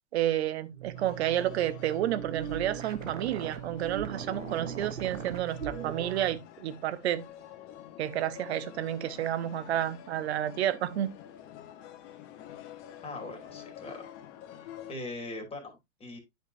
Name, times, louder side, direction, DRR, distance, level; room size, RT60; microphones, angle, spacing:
voice 1, 0.1-7.2 8.0-11.1, right 12 dB, 60° right, 1.0 m, -30 dB
sound 1, 0.7-6.4, right 8 dB, 85° right, 1.0 m, -39 dB
sound 2, 0.9-14.9, left 10 dB, 35° left, 1.1 m, -48 dB
voice 2, 13.0-14.1 14.9-16.2, left 2 dB, 15° left, 2.6 m, -40 dB
10.5 x 5.2 x 2.6 m
hypercardioid pair, 105°, 37 cm